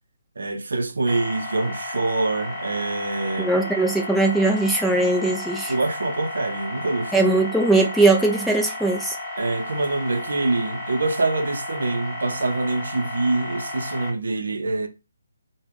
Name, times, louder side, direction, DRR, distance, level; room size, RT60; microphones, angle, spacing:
voice 1, 0.4-3.5 5.7-7.3 9.4-14.9, right 2 dB, 70° right, 0.5 m, -25 dB
sound 1, 1.1-14.1, left 2 dB, 30° left, 0.9 m, -33 dB
voice 2, 3.4-5.7 7.1-9.1, right 2 dB, ahead, 0.4 m, -20 dB
2.4 x 2.1 x 3.3 m
figure-of-eight pair, 150°, 0 cm